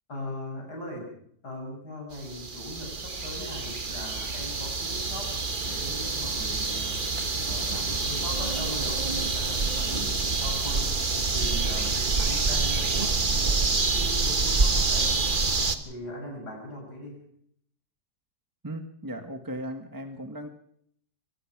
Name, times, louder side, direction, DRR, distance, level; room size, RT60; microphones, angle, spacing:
voice 1, 0.1-1.1 1.4-5.3 5.6-15.2 15.9-17.2, left 1 dB, 70° left, 0 dB, 6.9 m, -40 dB
sound 1, 2.1-15.8, right 3 dB, 30° right, 1.4 m, -27 dB
voice 2, 18.6-20.5, right 1 dB, 15° right, 7 dB, 1.2 m, -37 dB
23.5 x 18.5 x 6.0 m, 0.67 s
omnidirectional pair, 1.8 m